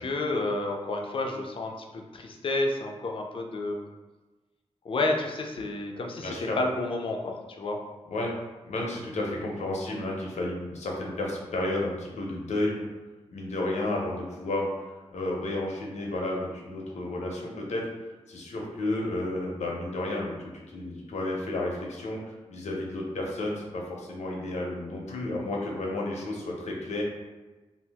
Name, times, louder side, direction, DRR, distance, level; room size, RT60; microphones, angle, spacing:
voice 1, 0.0-3.9 4.8-7.8, left 2 dB, 50° left, 2 dB, 0.4 m, -30 dB
voice 2, 6.2-6.6 8.1-8.3 8.6-12.9 13.3-14.7 15.1-17.8 18.3-27.0, left 2 dB, 85° left, -1 dB, 0.7 m, -32 dB
2.7 x 2.5 x 3.4 m, 1.2 s
wide cardioid pair, 105°, 11 cm